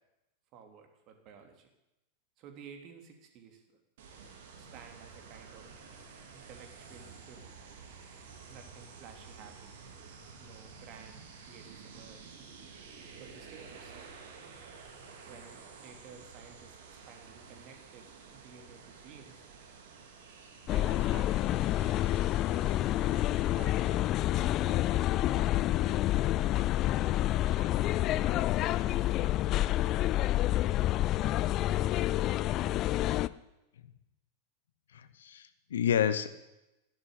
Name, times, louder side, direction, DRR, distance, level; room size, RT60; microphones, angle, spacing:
voice 1, 0.5-1.7 2.4-3.8 4.6-5.7 6.3-7.5 8.5-9.8 10.4-12.3 13.2-14.1 15.2-19.4 20.7-22.2 22.5-24.1 24.6-26.7 27.4-30.1, right 6 dB, 40° right, 5 dB, 3.1 m, -53 dB
sound 1, 4.0-24.0, right 5 dB, 55° right, 3.0 m, -51 dB
sound 2, 20.7-33.3, left 14 dB, 35° left, 0.5 m, -28 dB
voice 2, 34.9-36.3, left 9 dB, 65° left, 12 dB, 1.2 m, -29 dB
13.0 x 11.5 x 9.7 m, 0.94 s
figure-of-eight pair, 90°, 0 cm